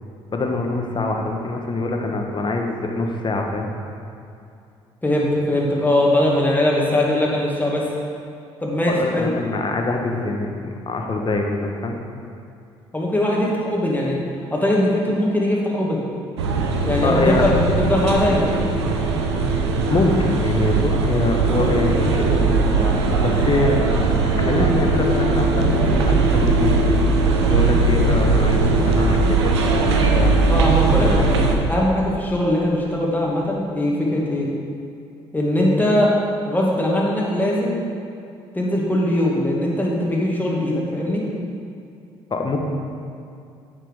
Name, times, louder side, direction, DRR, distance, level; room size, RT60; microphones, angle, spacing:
voice 1, 0.3-3.7 8.9-12.0 17.0-17.4 19.9-23.8 24.4-26.7 27.5-29.8 30.1-30.3 31.0-31.3 42.3-42.6, left 2 dB, 35° left, 2 dB, 1.3 m, -24 dB
voice 2, 5.0-7.8 8.6-9.3 12.9-14.2 14.5-16.0 16.8-18.5 30.5-34.5 35.3-36.1 36.4-37.8 38.5-41.2, left 1 dB, 15° left, -3 dB, 2.3 m, -20 dB
sound 1, 16.4-31.6, right 3 dB, 85° right, 0.7 m, -19 dB
9.1 x 6.0 x 4.9 m, 2.5 s
hypercardioid pair, 50°, 14 cm